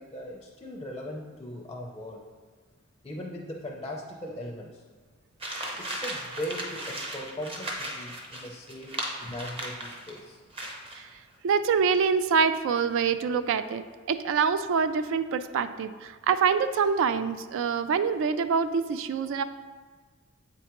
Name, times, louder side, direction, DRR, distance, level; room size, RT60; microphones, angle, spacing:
voice 1, 0.0-2.2 3.0-4.8 5.8-10.4, left 1 dB, 20° left, 0 dB, 0.5 m, -39 dB
sound 1, 5.4-10.2 10.5-11.0, right 1 dB, 25° right, 0.8 m, -36 dB
voice 2, 11.4-13.8 14.1-19.4, right 6 dB, 60° right, 12 dB, 0.3 m, -25 dB
7.8 x 4.5 x 2.9 m, 1.5 s
head